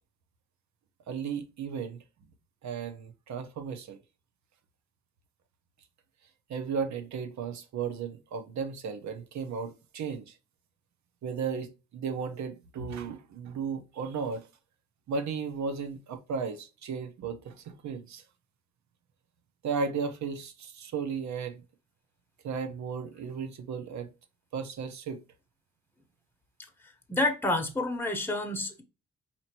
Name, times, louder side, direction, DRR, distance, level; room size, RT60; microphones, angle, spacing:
voice 1, 1.1-2.0 2.6-4.0 6.5-10.3 11.2-14.5 15.1-18.2 19.6-21.6 22.4-24.1 24.5-25.2, right 5 dB, 65° right, 0.9 m, -35 dB
voice 2, 27.1-28.8, left 2 dB, 5° left, 1.0 m, -29 dB
4.4 x 2.9 x 2.9 m
cardioid pair, 90°, 30 cm